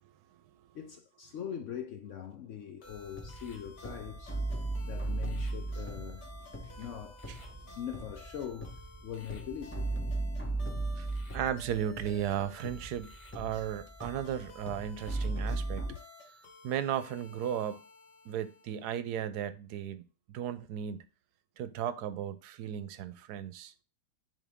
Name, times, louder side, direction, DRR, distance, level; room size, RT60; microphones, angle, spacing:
voice 1, 0.7-4.4 4.8-6.3 6.8-7.2 7.8-10.0 11.0-11.2 15.4-15.6 15.8-16.0, left 9 dB, 65° left, 0.7 m, -42 dB
sound 1, 2.8-19.0, left 2 dB, 85° left, 1.8 m, -54 dB
sound 2, 2.9-15.9, right 2 dB, 15° left, 0.5 m, -38 dB
voice 2, 7.3-7.8 10.9-11.1 11.3-13.1 13.3-15.8 16.6-17.8 18.2-20.0 20.3-21.0 21.6-23.7, right 9 dB, 80° right, 1.1 m, -35 dB
10.0 x 3.6 x 3.5 m
omnidirectional pair, 1.7 m